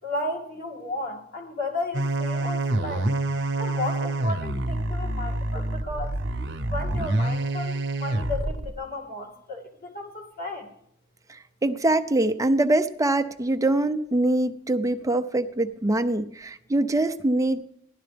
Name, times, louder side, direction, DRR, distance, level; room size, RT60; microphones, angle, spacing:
voice 1, 0.0-3.1 3.6-6.2 6.7-10.7, left 2 dB, 50° left, 1 dB, 2.4 m, -34 dB
sound 1, 1.9-8.7, right 2 dB, 60° right, 0.9 m, -27 dB
voice 2, 11.3-17.6, right 2 dB, 15° right, 8 dB, 0.6 m, -24 dB
17.0 x 11.5 x 3.4 m, 0.74 s
head